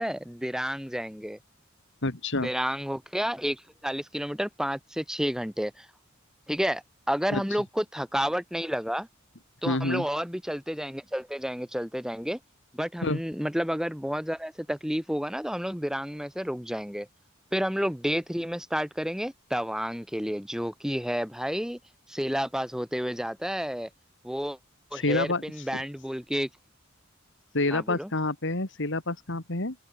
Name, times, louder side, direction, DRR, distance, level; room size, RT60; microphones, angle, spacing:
voice 1, 0.0-1.4 2.4-5.9 6.5-9.1 9.6-12.4 12.7-17.1 17.5-21.8 22.1-23.9 24.2-24.6 24.9-26.5 27.7-28.1, equal, 5° right, 7.4 m, -30 dB
voice 2, 2.0-2.5 7.3-7.4 9.7-10.1 13.0-13.2 24.9-25.4 27.5-29.8, left 2 dB, 60° left, 2.7 m, -28 dB
open air
head